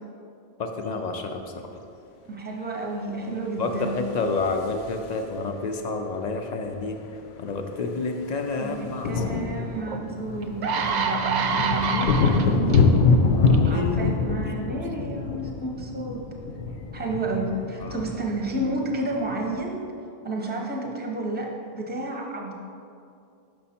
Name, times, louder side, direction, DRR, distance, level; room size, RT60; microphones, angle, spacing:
voice 1, 0.6-1.4 3.6-7.0 7.4-9.7 13.3-15.3 17.8-18.1, left 3 dB, 55° left, 4 dB, 0.5 m, -30 dB
voice 2, 2.3-4.0 8.6-12.8 13.7-16.2 16.9-19.8 20.2-22.5, right 2 dB, 10° right, 0 dB, 0.6 m, -31 dB
sound 1, 3.8-5.4 6.7-6.8 7.0-7.2 7.5-19.6, left 4 dB, 80° left, 0.8 m, -25 dB
sound 2, 9.9-10.0 10.4-12.8 13.5-13.7, right 5 dB, 55° right, 0.5 m, -26 dB
6.2 x 5.4 x 4.2 m, 2.5 s
omnidirectional pair, 1.1 m